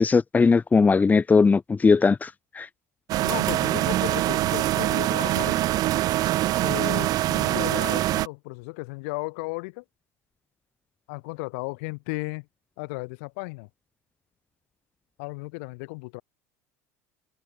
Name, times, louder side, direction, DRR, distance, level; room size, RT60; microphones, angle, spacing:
voice 1, 0.0-2.7, left 4 dB, 20° left, 1.6 m, -19 dB
sound 1, 3.1-8.3, right 15 dB, 55° right, 4.9 m, -24 dB
voice 2, 3.2-5.7 6.6-9.8 11.1-12.5 12.8-13.7 15.2-16.2, left 30 dB, 75° left, 7.3 m, -34 dB
hypercardioid pair, 90°, 8 cm